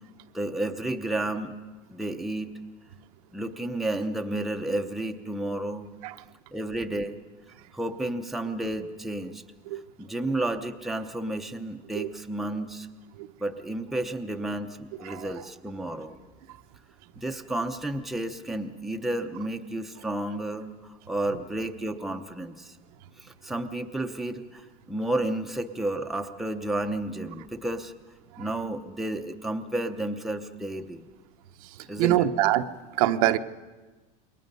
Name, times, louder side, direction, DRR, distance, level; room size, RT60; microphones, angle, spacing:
voice 1, 0.3-1.6 1.9-2.6 3.3-5.9 6.5-7.2 7.7-9.4 10.0-12.9 13.4-16.2 17.2-22.8 23.2-27.9 28.4-31.1 31.9-32.3, right 1 dB, ahead, 4 dB, 0.7 m, -31 dB
voice 2, 15.0-15.3 28.3-28.5 31.6-32.7 33.0-33.4, right 14 dB, 90° right, 8 dB, 0.9 m, -25 dB
28.0 x 22.5 x 5.4 m, 1.2 s
cardioid pair, 180°, 18 cm